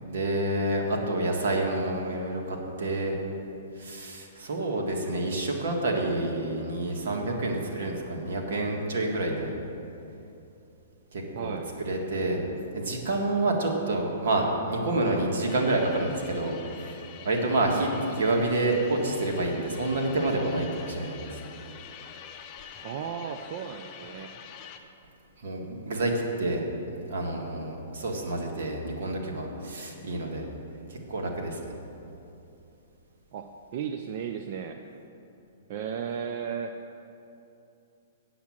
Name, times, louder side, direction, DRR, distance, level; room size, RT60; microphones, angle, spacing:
voice 1, 0.0-3.2 3.8-9.5 11.1-12.4 12.7-21.4 25.4-26.6 27.1-30.5 30.9-31.7, right 2 dB, 65° right, 0 dB, 1.8 m, -28 dB
voice 2, 11.3-11.7 22.8-24.3 33.3-33.5 33.7-34.8 35.7-36.8, right 7 dB, 45° right, 5 dB, 0.5 m, -34 dB
sound 1, 15.5-24.8, left 8 dB, 30° left, 0.7 m, -46 dB
8.5 x 7.4 x 7.3 m, 2.8 s
hypercardioid pair, 150°, 0 cm